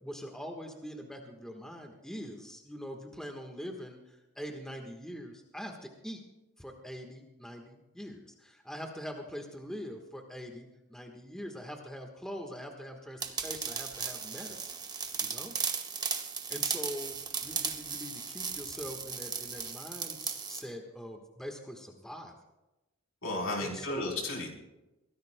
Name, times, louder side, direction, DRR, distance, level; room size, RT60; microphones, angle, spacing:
voice 1, 0.0-6.2 6.6-15.6 16.5-22.3 23.6-24.1, equal, 5° left, 3 dB, 1.3 m, -43 dB
sound 1, 13.2-20.6, right 5 dB, 20° right, 1.0 m, -36 dB
voice 2, 23.2-24.5, left 2 dB, 70° left, -1 dB, 3.9 m, -33 dB
23.5 x 17.0 x 2.2 m, 0.98 s
head